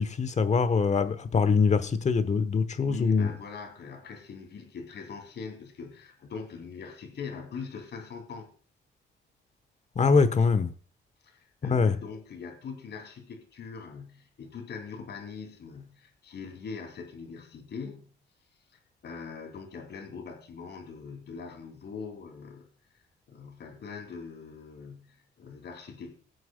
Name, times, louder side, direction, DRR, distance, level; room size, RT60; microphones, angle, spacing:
voice 1, 0.0-3.3 10.0-10.7 11.6-12.0, left 5 dB, 35° left, 1.1 m, -23 dB
voice 2, 2.8-8.5 11.2-18.2 19.0-23.0 23.3-26.2, left 5 dB, 60° left, 2.8 m, -42 dB
20.0 x 7.8 x 2.3 m
cardioid pair, 90°, 20 cm